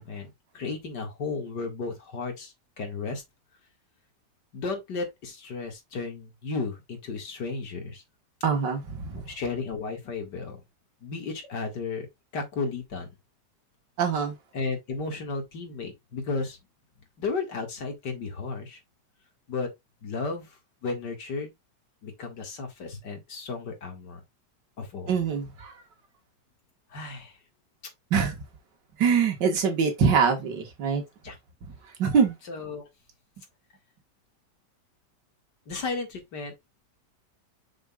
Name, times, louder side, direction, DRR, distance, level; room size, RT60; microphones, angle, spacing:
voice 1, 0.0-3.2 4.5-8.0 9.1-10.6 11.0-12.1 12.3-13.1 14.5-16.6 17.2-18.8 19.5-19.7 20.0-21.5 22.0-24.2 24.8-25.1 26.9-27.4 31.2-31.4 32.5-32.9 35.7-36.5, left 4 dB, 70° left, 2.6 m, -34 dB
voice 2, 8.4-9.3 14.0-14.3 25.1-25.7 28.1-28.4 29.0-31.0 32.0-32.4, right 6 dB, 80° right, 2.3 m, -24 dB
6.4 x 6.3 x 2.4 m
omnidirectional pair, 1.9 m